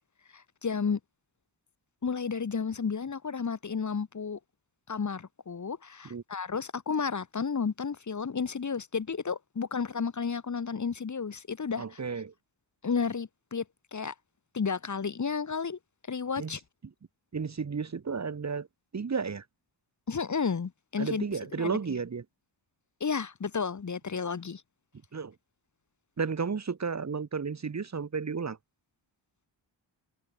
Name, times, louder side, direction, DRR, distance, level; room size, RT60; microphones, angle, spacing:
voice 1, 0.3-1.0 2.0-4.4 4.9-12.0 12.8-13.6 13.9-14.1 14.5-15.8 16.1-16.6 20.1-22.0 23.0-24.6, left 5 dB, 40° left, 1.9 m, -32 dB
voice 2, 11.8-12.3 16.4-16.6 17.3-18.7 18.9-19.4 21.0-22.2 25.1-25.3 26.2-28.6, right 5 dB, 35° right, 1.6 m, -33 dB
wide cardioid pair, 135°, 45 cm